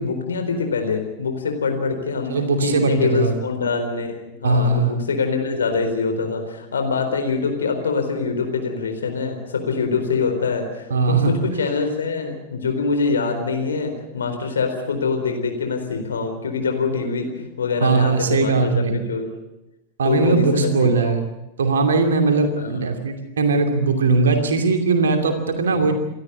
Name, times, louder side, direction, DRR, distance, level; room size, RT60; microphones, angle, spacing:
voice 1, 0.0-2.3 2.6-18.7 19.1-19.3 20.0-21.2 22.5-23.0 25.7-25.9, left 4 dB, 70° left, 5 dB, 4.2 m, -24 dB
voice 2, 2.3-3.3 4.4-5.0 10.9-11.3 17.8-19.0 20.0-21.2 21.6-25.9, right 3 dB, 65° right, 5 dB, 2.6 m, -19 dB
29.0 x 13.0 x 8.5 m, 0.96 s
figure-of-eight pair, 90°, 0 cm